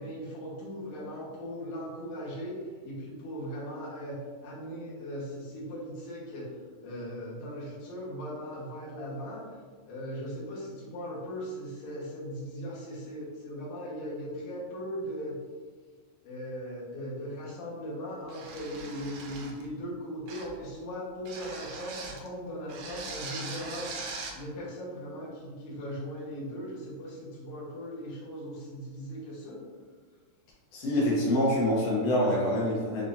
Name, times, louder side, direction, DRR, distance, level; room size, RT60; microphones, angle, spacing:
voice 1, 0.0-6.5 6.8-9.4 9.8-15.4 16.2-29.6, equal, 65° left, -8 dB, 2.6 m, -38 dB
sound 1, 18.3-19.7 20.3-20.6 21.3-22.3 22.7-24.4, right 4 dB, 85° right, 2.4 m, -41 dB
voice 2, 30.7-33.0, left 1 dB, 90° left, -5 dB, 1.3 m, -26 dB
6.7 x 2.8 x 2.6 m, 1.5 s
omnidirectional pair, 4.0 m